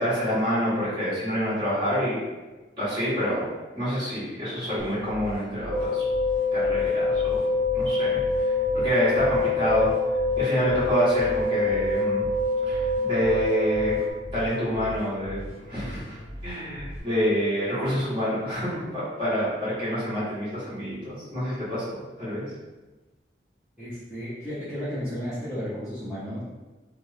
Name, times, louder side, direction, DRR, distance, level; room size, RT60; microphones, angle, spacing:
voice 1, 0.0-2.2 2.8-3.5 3.7-6.0 6.5-7.4 7.7-8.5 8.7-9.9 10.4-12.2 12.7-13.9 14.3-15.4 15.7-22.4, equal, 25° right, -11 dB, 1.3 m, -27 dB
sound 1, 4.8-17.0, equal, 50° left, 0.7 m, -39 dB
sound 2, 5.7-14.1, left 2 dB, 85° right, 0.6 m, -25 dB
voice 2, 23.8-26.4, equal, 5° right, -16 dB, 0.8 m, -33 dB
3.1 x 2.1 x 2.7 m, 1.2 s
head